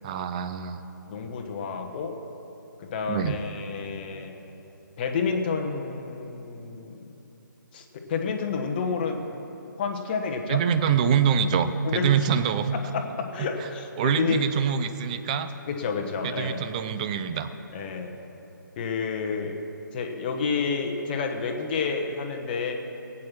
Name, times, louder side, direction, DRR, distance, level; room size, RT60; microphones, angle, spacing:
voice 1, 0.0-0.8 3.1-3.4 10.5-12.7 13.4-13.7 14.0-15.5 16.2-17.5, right 7 dB, 20° right, 10 dB, 0.5 m, -25 dB
voice 2, 1.1-2.2 2.8-4.3 5.0-7.0 7.7-9.2 9.8-10.6 11.8-12.1 12.7-14.4 15.7-16.6 17.7-18.2 18.8-19.6 19.9-22.7, left 5 dB, 30° left, 4 dB, 1.1 m, -30 dB
17.0 x 8.7 x 6.1 m, 3.0 s
figure-of-eight pair, 140°, 11 cm